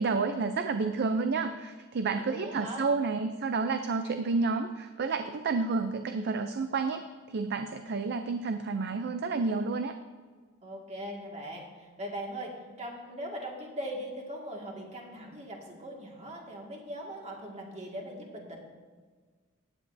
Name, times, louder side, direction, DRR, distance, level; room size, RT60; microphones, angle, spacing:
voice 1, 0.0-10.0, right 4 dB, 50° right, 8 dB, 0.5 m, -30 dB
voice 2, 2.1-2.8 10.6-12.5 12.8-18.6, equal, 30° right, 0 dB, 2.0 m, -40 dB
15.5 x 9.9 x 2.7 m, 1.5 s
head